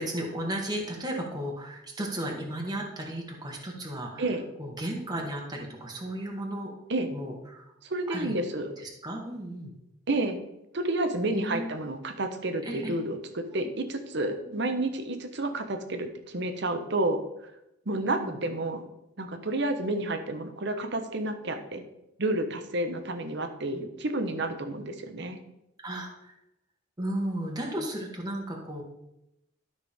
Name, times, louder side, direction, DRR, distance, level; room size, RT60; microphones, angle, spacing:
voice 1, 0.0-4.3 4.6-6.7 7.1-7.6 8.1-8.3 8.8-9.7 11.3-11.7 12.6-13.0 13.5-13.7 14.4-14.7 17.9-18.4 25.8-26.4 27.0-28.8, right 1 dB, 20° right, -1 dB, 1.5 m, -34 dB
voice 2, 7.8-8.7 10.1-10.4 10.7-17.2 17.9-18.8 19.2-21.8 22.2-25.4, right 2 dB, 65° right, 7 dB, 1.1 m, -30 dB
12.0 x 6.0 x 3.6 m, 0.86 s
head